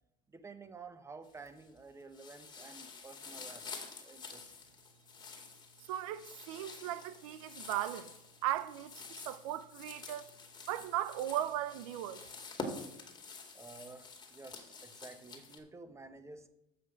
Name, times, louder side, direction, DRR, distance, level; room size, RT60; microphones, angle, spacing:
voice 1, 0.3-4.5 13.2-16.5, right 3 dB, 15° right, 1.0 m, -52 dB
sound 1, 1.2-1.8 2.1-15.6, left 3 dB, 25° left, 2.1 m, -48 dB
voice 2, 5.9-8.1 8.4-10.3 10.7-12.2, right 12 dB, 80° right, 0.6 m, -37 dB
7.7 x 5.7 x 6.2 m
supercardioid pair, 95°, 17 cm